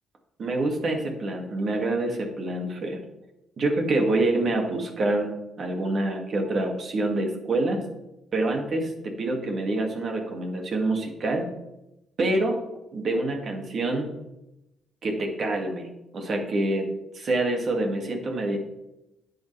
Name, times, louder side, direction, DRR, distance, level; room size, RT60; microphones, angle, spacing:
voice 1, 0.4-3.0 3.6-5.3 5.6-7.8 8.3-8.9 9.2-11.5 12.2-12.6 12.9-14.1 15.0-15.9 16.1-16.9 17.1-18.6, right 2 dB, 50° right, 2 dB, 2.3 m, -26 dB
10.0 x 8.5 x 3.4 m, 0.91 s
cardioid pair, 90°, 0 cm